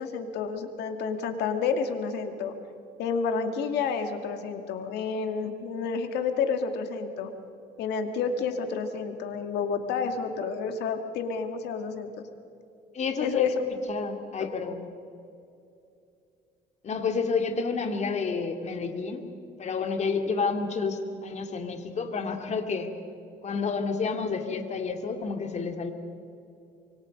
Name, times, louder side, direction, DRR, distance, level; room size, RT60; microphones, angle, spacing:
voice 1, 0.0-2.5 3.0-7.3 7.8-12.3 13.2-13.6, left 5 dB, 80° left, 6 dB, 2.2 m, -30 dB
voice 2, 12.9-13.5 13.9-14.8 16.8-19.3 19.6-22.9 23.4-25.9, left 4 dB, 40° left, 5 dB, 2.5 m, -30 dB
26.0 x 24.0 x 5.3 m, 2.6 s
cardioid pair, 110°, 17 cm